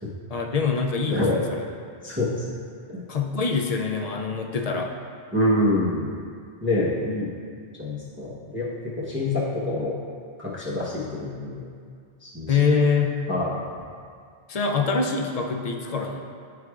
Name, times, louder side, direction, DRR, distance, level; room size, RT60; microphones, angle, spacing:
voice 1, 0.3-1.6 3.1-4.9 12.5-13.2 14.5-16.2, left 5 dB, 65° left, 3 dB, 0.3 m, -24 dB
voice 2, 1.1-1.4 2.0-2.4 2.9-3.0 5.3-6.2 6.6-7.3 7.8-9.9 10.4-11.6 12.2-12.6 13.3-13.6, left 1 dB, 10° right, -7 dB, 0.7 m, -26 dB
10.0 x 4.7 x 2.3 m, 2.2 s
omnidirectional pair, 1.2 m